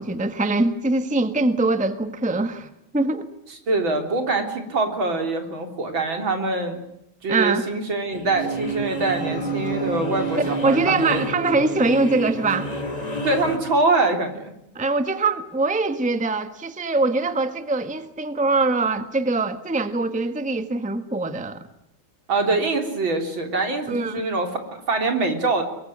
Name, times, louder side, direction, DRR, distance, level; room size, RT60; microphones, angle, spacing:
voice 1, 0.0-2.7 2.9-3.3 7.3-7.7 10.4-12.7 14.7-21.6 23.9-24.2, right 3 dB, 5° right, 10 dB, 1.3 m, -23 dB
voice 2, 3.7-6.8 7.2-11.2 13.2-14.5 22.3-25.6, right 3 dB, 70° right, 5 dB, 4.4 m, -24 dB
sound 1, 8.1-13.6, right 2 dB, 20° left, 3.7 m, -29 dB
23.5 x 23.0 x 10.0 m, 0.79 s
omnidirectional pair, 2.2 m